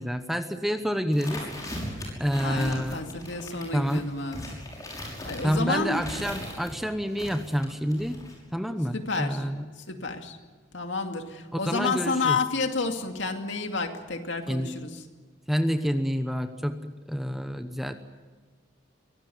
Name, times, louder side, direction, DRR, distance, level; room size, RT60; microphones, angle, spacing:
voice 1, 0.0-1.5 2.2-3.0 3.7-4.1 5.4-8.2 8.5-9.6 11.5-12.4 14.5-14.7 15.5-17.9, equal, ahead, 8 dB, 0.9 m, -28 dB
sound 1, 1.1-6.7 7.1-8.4, left 1 dB, 15° left, 6.1 m, -38 dB
voice 2, 2.4-4.5 4.8-6.3 8.9-9.5 9.9-10.4 10.7-15.0, left 3 dB, 65° left, 5 dB, 2.4 m, -30 dB
23.5 x 18.0 x 9.5 m, 1.4 s
head